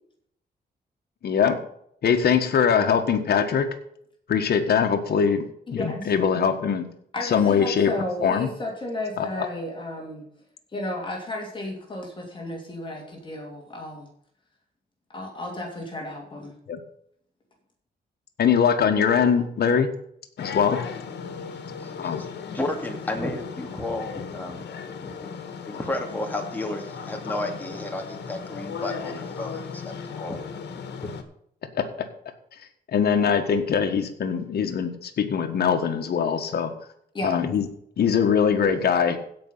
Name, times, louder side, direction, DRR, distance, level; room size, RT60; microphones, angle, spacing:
voice 1, 1.2-1.6 2.0-3.7 4.3-6.9 7.3-7.9 8.2-8.5 9.2-9.5 16.7-16.8 18.4-19.9 20.4-20.8 22.0-22.3 31.7-31.9 32.9-36.7 37.2-37.6 38.0-39.2, left 7 dB, 65° left, 5 dB, 1.7 m, -22 dB
voice 2, 5.7-6.1 7.1-10.2 10.7-14.1 15.1-16.5 37.1-37.4, left 1 dB, 30° left, 0 dB, 3.0 m, -33 dB
sound 1, 20.4-31.2, left 6 dB, 85° left, 1.6 m, -36 dB
voice 3, 21.8-22.3 22.5-25.3 25.7-30.4 31.0-31.1, left 1 dB, 10° left, 2 dB, 2.3 m, -33 dB
16.0 x 5.6 x 5.6 m, 0.68 s
wide cardioid pair, 130°, 17 cm